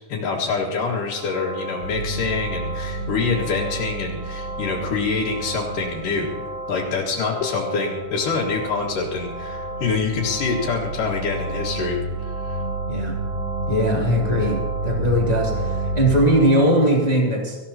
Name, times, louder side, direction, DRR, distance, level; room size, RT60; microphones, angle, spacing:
voice 1, 0.1-6.3 6.7-12.6, left 4 dB, 75° left, -5 dB, 3.3 m, -26 dB
sound 1, 0.9-17.0, right 1 dB, 75° right, 4.4 m, -35 dB
sound 2, 1.8-7.0 7.4-16.2, right 2 dB, 45° left, 3.4 m, -30 dB
voice 2, 13.7-17.6, equal, 15° left, -3 dB, 2.0 m, -20 dB
24.5 x 15.0 x 2.9 m, 1.5 s
omnidirectional pair, 3.8 m